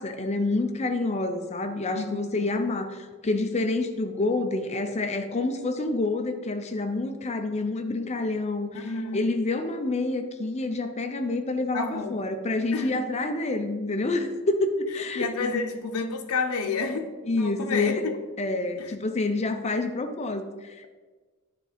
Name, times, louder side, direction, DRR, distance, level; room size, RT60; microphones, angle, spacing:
voice 1, 0.0-15.6 17.3-18.1 18.4-20.9, left 2 dB, 30° left, 7 dB, 0.5 m, -28 dB
voice 2, 1.9-2.4 8.7-9.3 11.7-12.2 12.7-13.3 15.1-17.1 17.4-18.0 18.8-18.9, left 4 dB, 80° left, 4 dB, 0.7 m, -30 dB
10.0 x 3.6 x 5.0 m, 1.3 s
head